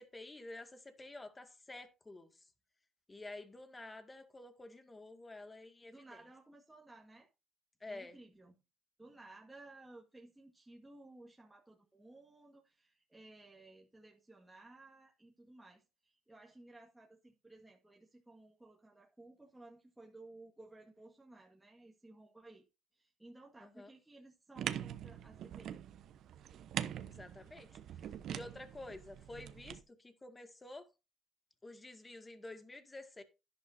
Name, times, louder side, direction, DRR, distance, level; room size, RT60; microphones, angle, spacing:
voice 1, 0.0-2.3 3.1-5.9 7.8-8.2 23.6-23.9 27.1-27.8 28.3-30.9 31.6-33.2, left 2 dB, 20° left, 2.0 m, -50 dB
voice 2, 5.9-7.3 7.9-8.6 9.0-22.6 22.9-25.8, right 2 dB, 10° right, 1.8 m, -57 dB
sound 1, 24.5-29.8, right 10 dB, 65° right, 0.9 m, -43 dB
11.0 x 11.0 x 2.7 m
supercardioid pair, 85°, 0 cm